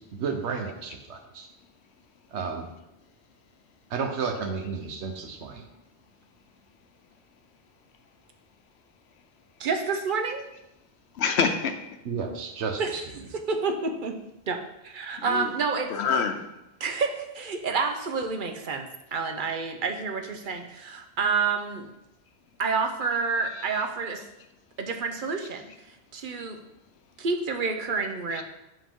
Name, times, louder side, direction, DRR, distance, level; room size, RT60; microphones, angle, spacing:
voice 1, 0.1-1.5 2.3-2.7 3.9-5.6 12.0-13.0, right 5 dB, 85° right, 5 dB, 1.2 m, -32 dB
voice 2, 9.6-10.4 12.8-12.9 13.3-14.2 14.5-14.6 14.9-15.9 16.8-21.9 22.6-24.2 24.8-25.6 26.1-26.6 27.2-28.4, right 4 dB, 55° right, 5 dB, 0.8 m, -28 dB
voice 3, 11.1-11.8 15.2-15.5 15.9-16.5 23.5-23.8 28.3-28.4, left 5 dB, 75° left, 7 dB, 0.9 m, -27 dB
7.5 x 5.3 x 3.6 m, 0.91 s
omnidirectional pair, 1.1 m